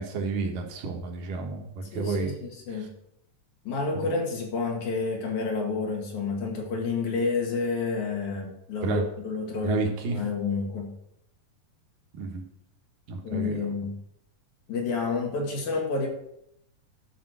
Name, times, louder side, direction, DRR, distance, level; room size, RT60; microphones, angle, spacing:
voice 1, 0.0-2.3 2.7-2.9 3.9-4.1 8.8-9.1 9.6-10.2 12.1-12.4 13.1-13.7, right 3 dB, 80° right, 3 dB, 3.0 m, -30 dB
voice 2, 1.9-2.9 3.6-11.0 13.2-14.0 14.7-16.1, left 4 dB, 65° left, 0 dB, 3.4 m, -29 dB
12.0 x 5.1 x 6.2 m, 0.75 s
omnidirectional pair, 3.8 m